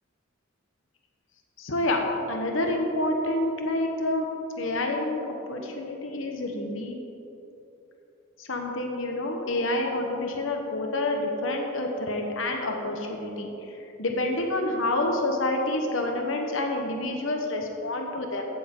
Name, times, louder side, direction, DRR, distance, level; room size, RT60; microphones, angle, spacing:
voice 1, 1.6-2.0 2.3-4.3 4.6-7.0 8.4-13.5 14.0-18.5, left 2 dB, 70° left, 2 dB, 1.1 m, -28 dB
15.5 x 6.9 x 3.8 m, 3.0 s
head